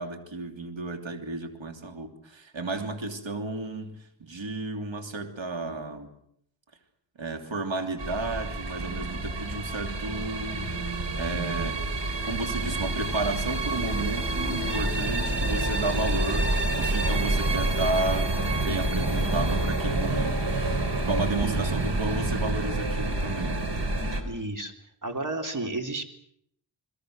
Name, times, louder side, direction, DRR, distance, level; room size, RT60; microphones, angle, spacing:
voice 1, 0.0-6.1 7.2-10.7 11.2-11.8 12.2-18.3 18.6-20.4 21.1-23.6, right 2 dB, 85° right, 5 dB, 3.0 m, -32 dB
sound 1, 8.0-24.2, right 2 dB, 65° right, 3.7 m, -28 dB
voice 2, 21.4-21.7 24.2-24.7 25.0-26.0, right 2 dB, 45° right, 4 dB, 3.6 m, -32 dB
30.0 x 21.5 x 6.5 m, 0.72 s
wide cardioid pair, 60°, 45 cm